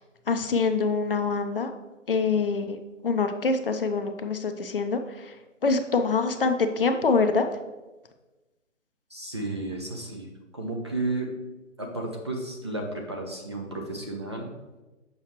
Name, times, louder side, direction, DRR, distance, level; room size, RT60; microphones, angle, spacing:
voice 1, 0.3-1.7 2.1-2.8 3.0-5.3 5.6-7.5, left 4 dB, 45° left, 7 dB, 0.6 m, -25 dB
voice 2, 9.1-11.3 11.8-14.5, right 2 dB, 20° right, 0 dB, 0.5 m, -33 dB
7.4 x 5.6 x 3.1 m, 1.1 s
figure-of-eight pair, 140°, 39 cm